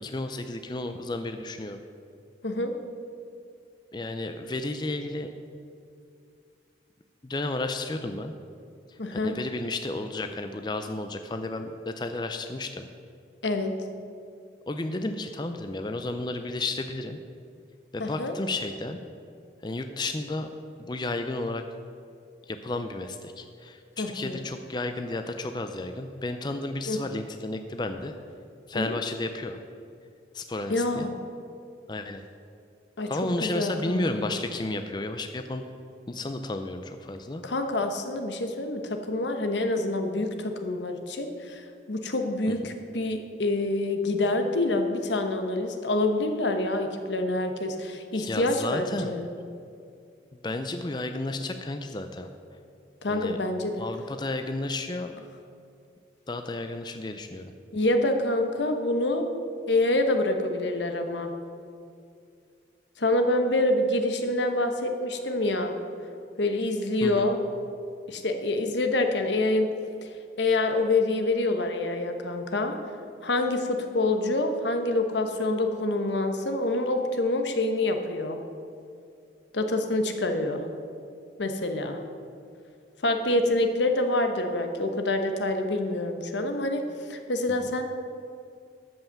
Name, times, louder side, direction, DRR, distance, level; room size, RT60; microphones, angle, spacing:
voice 1, 0.0-1.8 3.9-5.3 7.2-8.3 8.9-12.9 14.7-17.2 17.9-19.0 19.6-20.5 20.8-21.6 22.5-28.1 28.7-29.6 30.3-31.1 31.9-32.2 33.1-35.6 36.1-37.4 48.1-49.1 50.4-52.3 53.1-53.4 53.8-55.2 56.3-57.5 67.0-67.3, left 2 dB, 25° left, 7 dB, 0.4 m, -32 dB
voice 2, 9.0-9.4 13.4-13.8 18.0-18.3 24.0-24.5 26.9-27.2 28.7-28.9 30.7-31.1 33.0-33.1 33.4-34.3 37.4-49.3 53.0-53.8 57.7-59.3 59.7-61.3 63.0-65.8 66.4-67.4 68.1-69.7 70.0-70.1 70.4-72.8 73.2-78.4 79.5-80.6 81.4-82.0 83.0-87.9, left 2 dB, 80° left, 6 dB, 1.1 m, -26 dB
13.0 x 5.6 x 7.2 m, 2.4 s
head